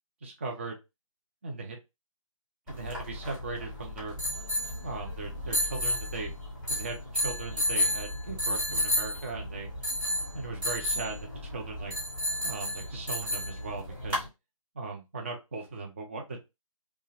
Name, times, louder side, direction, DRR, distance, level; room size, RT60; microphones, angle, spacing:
voice 1, 0.2-0.8 1.4-1.8 2.7-4.1 4.8-6.3 6.7-9.7 10.3-12.0 12.4-14.3 14.7-16.4, right 3 dB, 20° right, 1 dB, 0.5 m, -38 dB
sound 1, 2.7-14.3, left 1 dB, 5° right, 0.8 m, -32 dB
2.8 x 2.2 x 2.9 m, 0.24 s
figure-of-eight pair, 155°, 18 cm